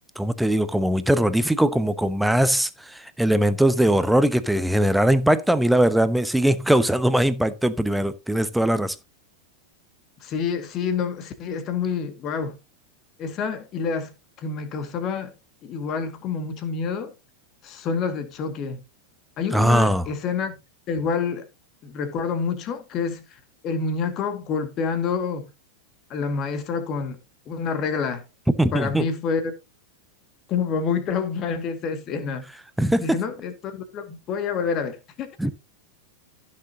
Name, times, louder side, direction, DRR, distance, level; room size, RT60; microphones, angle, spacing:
voice 1, 0.2-8.9 19.5-20.0 28.6-29.1 32.8-33.1 35.4-35.5, right 1 dB, 5° right, 0.9 m, -20 dB
voice 2, 10.2-12.6 13.2-14.1 14.4-15.3 15.6-17.1 17.6-18.8 19.4-20.5 20.9-21.5 21.8-25.5 26.1-27.2 27.5-28.2 28.7-29.5 30.5-32.4 33.0-35.3, left 5 dB, 35° left, 2.0 m, -27 dB
15.0 x 6.5 x 2.8 m
figure-of-eight pair, 90°, 0 cm